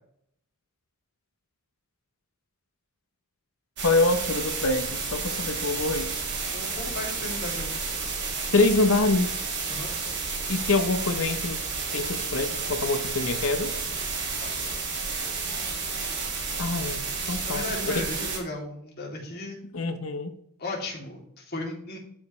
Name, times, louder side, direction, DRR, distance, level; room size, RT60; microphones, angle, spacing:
voice 1, 3.8-6.1 8.5-9.4 10.5-11.6 11.9-13.7 16.6-17.0 17.3-17.9 19.7-20.3, left 2 dB, 65° left, 0.8 m, -25 dB
sound 1, 3.8-18.4, right 4 dB, 55° right, 2.3 m, -31 dB
voice 2, 6.5-7.8 9.7-9.9 14.4-14.5 17.4-19.6 20.6-22.0, left 1 dB, 45° left, 2.6 m, -35 dB
12.5 x 5.3 x 3.1 m
head